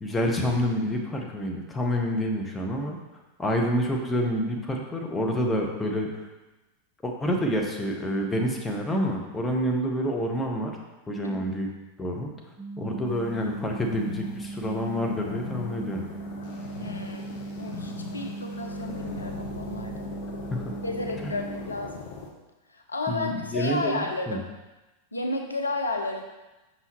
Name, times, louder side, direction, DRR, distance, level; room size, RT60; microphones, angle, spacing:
voice 1, 0.0-3.0 3.4-6.1 7.0-10.7 11.1-11.7 12.0-12.3 12.8-16.0 20.5-20.6 21.2-21.3 23.1-24.0 24.3-24.4, equal, 10° left, 0 dB, 0.9 m, -28 dB
sound 1, 12.6-21.7, right 3 dB, 25° right, 0.8 m, -38 dB
sound 2, 13.1-22.3, left 4 dB, 50° left, 1.0 m, -40 dB
voice 2, 16.8-20.1 20.8-22.1 22.7-24.5 25.1-26.2, left 2 dB, 80° left, 3 dB, 0.5 m, -32 dB
5.7 x 5.5 x 3.1 m, 1.1 s
figure-of-eight pair, 90°, 0 cm